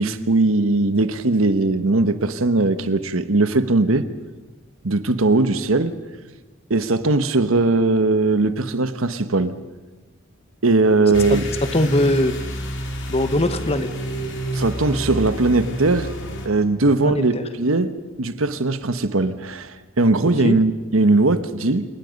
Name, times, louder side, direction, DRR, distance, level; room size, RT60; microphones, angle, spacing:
voice 1, 0.0-4.0 4.8-5.9 6.7-9.5 10.6-11.5 14.5-16.1 16.4-17.9 18.2-21.9, right 2 dB, 75° right, 11 dB, 1.2 m, -19 dB
sound 1, 11.1-16.5, right 1 dB, 60° left, 3.0 m, -29 dB
voice 2, 11.1-11.4 11.7-12.3 13.1-13.9 17.0-17.5 20.2-20.6, left 1 dB, 30° left, 10 dB, 1.2 m, -22 dB
29.0 x 18.5 x 5.3 m, 1.3 s
head